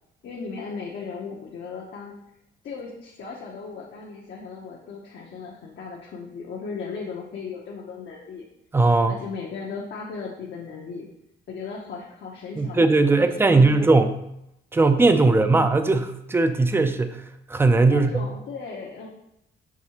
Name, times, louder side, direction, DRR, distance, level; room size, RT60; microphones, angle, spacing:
voice 1, 0.2-2.1 2.6-8.4 9.1-11.0 11.5-13.8 15.2-15.5 17.9-19.1, left 5 dB, 65° left, -4 dB, 0.7 m, -37 dB
voice 2, 8.7-9.1 12.6-14.2 14.7-17.2 17.5-18.3, right 3 dB, 10° right, 9 dB, 0.3 m, -19 dB
5.9 x 2.7 x 2.9 m, 0.81 s
cardioid pair, 90°, 20 cm